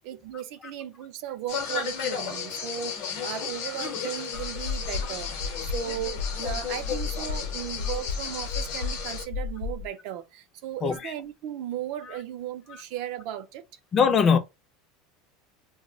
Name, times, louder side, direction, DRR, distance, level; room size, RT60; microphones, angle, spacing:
voice 1, 0.0-2.9 3.2-5.3 5.6-13.6, right 11 dB, 55° right, 0.3 m, -36 dB
sound 1, 1.5-9.2, left 7 dB, 60° left, 0.7 m, -34 dB
sound 2, 4.3-9.9, left 5 dB, 85° left, 0.4 m, -33 dB
voice 2, 10.8-11.1 13.9-14.4, left 6 dB, 25° left, 0.4 m, -21 dB
2.2 x 2.0 x 3.6 m
supercardioid pair, 165°, 0 cm